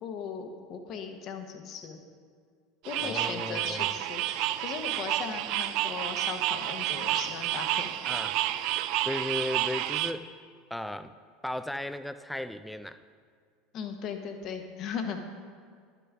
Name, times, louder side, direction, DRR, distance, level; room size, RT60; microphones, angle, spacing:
voice 1, 0.0-2.0 2.8-7.9 13.7-15.2, left 6 dB, 50° left, 5 dB, 1.1 m, -38 dB
sound 1, 2.8-10.1, right 13 dB, 60° right, 0.3 m, -30 dB
voice 2, 3.0-3.9 8.0-8.4 9.1-10.3 10.7-11.1 11.4-13.0, left 1 dB, 5° left, 11 dB, 0.4 m, -35 dB
11.5 x 6.9 x 3.6 m, 2.1 s
hypercardioid pair, 80°, 0 cm